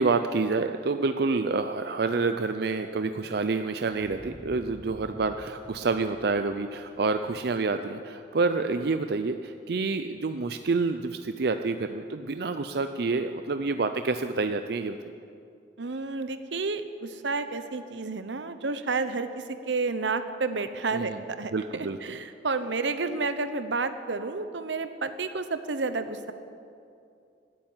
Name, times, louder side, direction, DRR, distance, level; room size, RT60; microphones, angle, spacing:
voice 1, 0.0-15.1 20.9-21.2 21.5-22.0, right 3 dB, 60° right, 8 dB, 0.5 m, -28 dB
sound 1, 3.9-8.5, equal, 5° left, 1.4 m, -50 dB
voice 2, 15.8-26.3, right 3 dB, 85° right, 10 dB, 0.9 m, -31 dB
15.5 x 8.7 x 9.4 m, 2.5 s
head